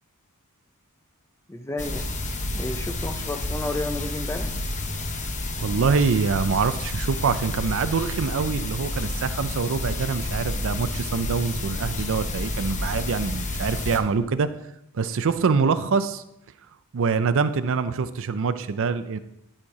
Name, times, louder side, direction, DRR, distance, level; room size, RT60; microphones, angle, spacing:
voice 1, 1.5-2.1 2.5-4.5, left 2 dB, 10° left, 7 dB, 0.5 m, -31 dB
sound 1, 1.8-14.0, left 2 dB, 35° left, 0.9 m, -30 dB
voice 2, 5.5-14.5 14.9-16.2 16.9-19.2, right 5 dB, 60° right, 12 dB, 0.5 m, -25 dB
11.5 x 4.4 x 4.9 m, 0.81 s
head